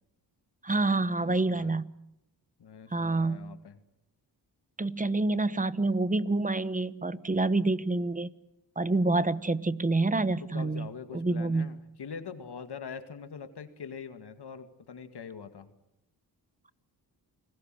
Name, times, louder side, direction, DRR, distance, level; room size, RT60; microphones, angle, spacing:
voice 1, 0.6-1.9 2.9-3.4 4.8-8.3 8.8-11.7, right 2 dB, 20° right, 15 dB, 1.2 m, -27 dB
voice 2, 1.2-1.8 2.6-3.8 10.4-15.7, left 6 dB, 65° left, 8 dB, 2.3 m, -43 dB
29.0 x 20.5 x 7.8 m, 0.86 s
cardioid pair, 65°, 43 cm